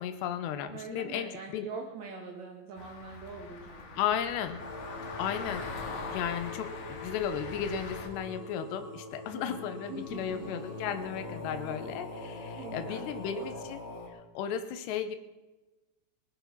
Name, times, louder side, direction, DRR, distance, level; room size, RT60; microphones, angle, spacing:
voice 1, 0.0-1.7 4.0-4.6 5.2-5.8 6.1-13.8 14.3-15.2, left 8 dB, 85° left, 10 dB, 2.9 m, -34 dB
voice 2, 0.7-4.0 9.3-10.5 12.5-13.1, right 4 dB, 75° right, 1 dB, 1.6 m, -43 dB
sound 1, 2.8-8.1, left 4 dB, 55° left, 2.4 m, -42 dB
sound 2, 4.6-14.1, left 2 dB, 30° left, 3.0 m, -43 dB
19.5 x 9.4 x 5.9 m, 1.1 s
omnidirectional pair, 4.9 m